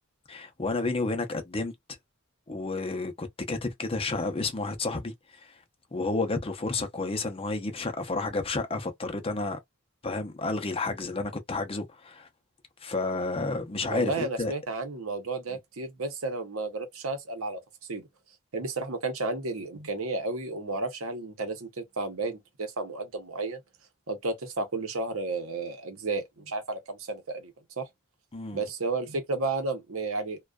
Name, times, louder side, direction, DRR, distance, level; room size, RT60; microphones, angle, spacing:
voice 1, 0.3-1.7 2.5-5.1 5.4-5.5 5.9-9.6 10.0-12.3 12.8-14.5 15.5-15.6 28.3-28.6, left 3 dB, 25° left, 0.6 m, -31 dB
voice 2, 13.9-17.6 17.9-18.1 18.5-23.6 24.1-27.9 28.5-30.4, right 3 dB, 70° right, 0.8 m, -32 dB
2.4 x 2.3 x 2.2 m
head